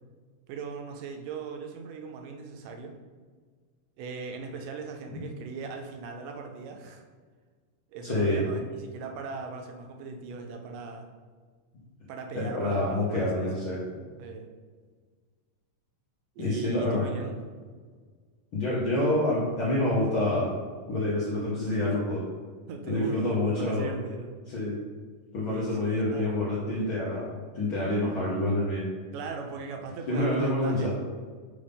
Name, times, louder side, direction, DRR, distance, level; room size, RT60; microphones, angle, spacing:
voice 1, 0.5-3.0 4.0-7.0 7.9-11.1 12.1-13.8 14.2-14.5 16.4-17.5 21.6-22.0 22.7-24.3 25.4-26.5 29.1-31.0, right 4 dB, 80° right, 3 dB, 2.2 m, -39 dB
voice 2, 8.0-8.4 12.3-13.8 16.4-17.1 18.5-20.5 20.9-22.2 22.9-23.9 24.5-24.8 25.3-28.9 30.1-30.9, left 1 dB, 80° left, -7 dB, 1.1 m, -27 dB
5.3 x 3.5 x 5.2 m, 1.5 s
omnidirectional pair, 3.8 m